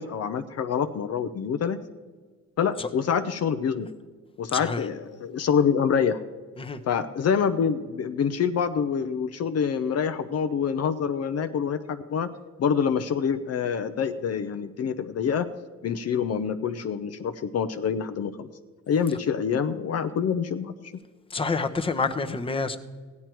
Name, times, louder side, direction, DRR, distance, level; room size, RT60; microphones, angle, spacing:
voice 1, 0.0-1.8 2.6-3.9 4.4-6.2 6.9-12.3 12.6-15.5 15.8-18.5 18.9-20.7 22.3-22.4, left 7 dB, 55° left, 0.7 m, -26 dB
voice 2, 21.3-22.8, left 4 dB, 20° left, 0.9 m, -28 dB
16.0 x 11.0 x 4.6 m
cardioid pair, 90°, 30 cm